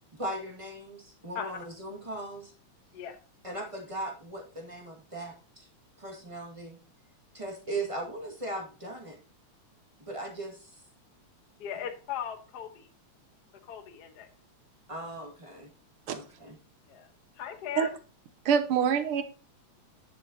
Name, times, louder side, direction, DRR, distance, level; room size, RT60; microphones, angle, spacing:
voice 1, 0.1-2.5 3.4-5.7 6.0-6.8 7.3-9.2 10.1-10.7 11.7-11.8 14.9-15.7 16.1-16.6, right 2 dB, 15° right, 0 dB, 1.4 m, -38 dB
voice 2, 11.6-12.9 13.7-14.3 16.9-17.1 17.4-17.9, left 9 dB, 55° left, 5 dB, 1.1 m, -38 dB
voice 3, 18.4-19.2, right 7 dB, 70° right, 9 dB, 1.4 m, -25 dB
10.0 x 7.1 x 2.8 m, 0.37 s
omnidirectional pair, 3.4 m